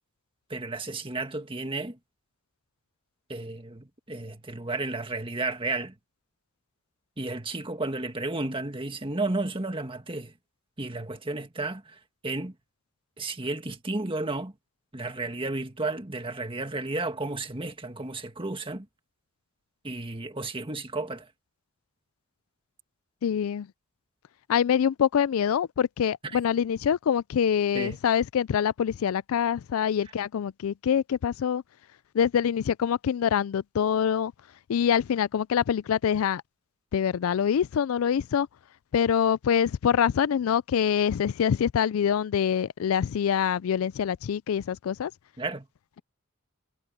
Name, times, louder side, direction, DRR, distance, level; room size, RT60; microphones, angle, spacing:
voice 1, 0.5-2.0 3.3-5.9 7.2-10.3 10.8-12.5 13.2-14.5 14.9-18.8 19.8-21.3 27.7-28.0 45.4-45.7, right 2 dB, 25° right, 1.8 m, -32 dB
voice 2, 23.2-23.7 24.5-31.6 32.1-34.3 34.7-36.4 36.9-38.5 38.9-45.1, left 8 dB, 85° left, 0.4 m, -25 dB
head